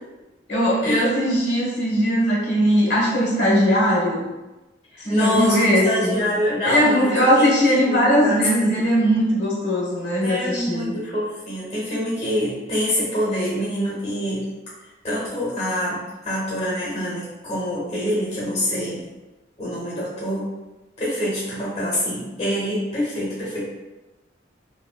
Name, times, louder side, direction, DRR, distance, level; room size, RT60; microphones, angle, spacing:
voice 1, 0.5-4.3 5.0-6.2 6.6-10.9, equal, 70° left, -6 dB, 1.1 m, -19 dB
voice 2, 4.9-8.8 10.2-14.4 15.0-19.1 19.6-20.5 21.0-23.6, equal, 35° left, -6 dB, 0.9 m, -26 dB
2.9 x 2.8 x 2.2 m, 1.1 s
head